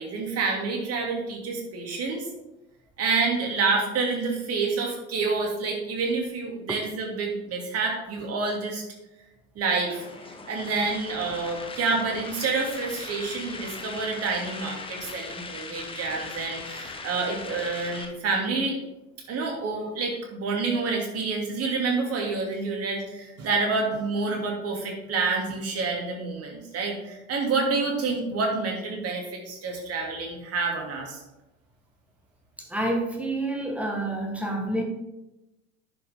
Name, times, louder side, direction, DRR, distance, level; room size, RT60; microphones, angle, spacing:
voice 1, 0.0-2.2 3.0-8.8 9.6-10.1 10.5-18.8 19.3-31.2, right 4 dB, 35° right, 0 dB, 2.6 m, -28 dB
sound 1, 9.9-18.0, left 4 dB, 10° left, 1.0 m, -39 dB
voice 2, 32.7-34.8, right 1 dB, 5° right, 2 dB, 1.6 m, -28 dB
10.5 x 5.8 x 3.8 m, 0.96 s
figure-of-eight pair, 80°, 42 cm